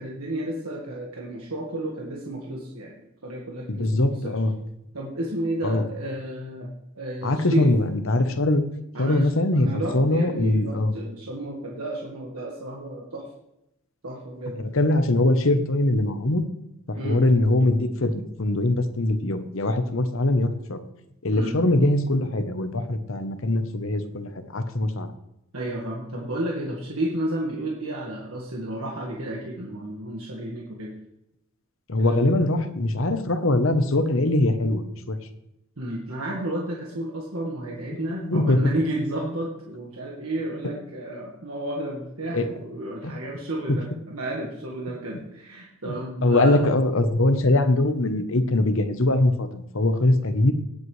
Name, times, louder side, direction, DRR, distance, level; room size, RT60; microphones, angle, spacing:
voice 1, 0.0-4.3 4.9-6.7 6.9-7.7 8.9-13.2 14.0-14.6 17.0-17.2 21.3-21.5 25.5-30.9 32.0-32.3 35.8-46.6, right 1 dB, 75° right, -2 dB, 1.7 m, -32 dB
voice 2, 3.7-4.5 5.6-5.8 7.2-8.6 9.0-10.9 14.6-16.4 17.0-20.8 21.2-25.1 31.9-35.2 38.2-38.7 42.3-42.5 43.0-43.1 43.7-43.8 45.9-46.0 46.2-50.5, left 2 dB, 60° left, 9 dB, 1.0 m, -22 dB
17.5 x 8.1 x 3.3 m, 0.84 s
head